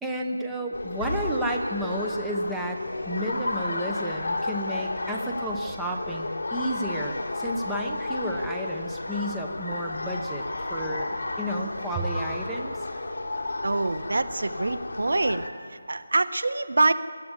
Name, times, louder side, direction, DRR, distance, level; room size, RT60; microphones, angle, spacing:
voice 1, 0.0-2.8 3.1-10.4 10.7-11.1 11.4-12.7, right 1 dB, 5° right, 0 dB, 0.9 m, -31 dB
sound 1, 0.7-15.5, left 2 dB, 55° left, 3.2 m, -32 dB
voice 2, 13.6-15.4 15.7-16.9, right 2 dB, 70° right, 12 dB, 1.3 m, -25 dB
21.5 x 13.5 x 9.7 m, 2.1 s
figure-of-eight pair, 175°, 0 cm